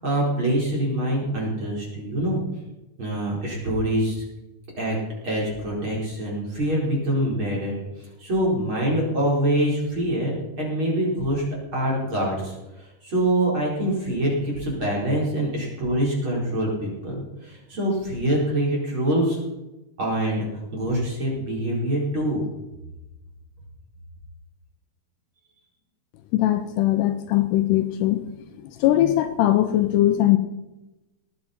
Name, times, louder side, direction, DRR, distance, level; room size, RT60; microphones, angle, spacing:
voice 1, 0.0-2.4 3.0-4.2 4.8-5.0 5.2-7.8 8.2-11.5 11.7-19.4 20.0-22.4, right 1 dB, 30° right, -4 dB, 4.7 m, -25 dB
voice 2, 26.3-28.3 28.6-30.4, left 13 dB, 80° left, 9 dB, 2.6 m, -20 dB
18.5 x 11.0 x 4.4 m, 0.99 s
omnidirectional pair, 5.1 m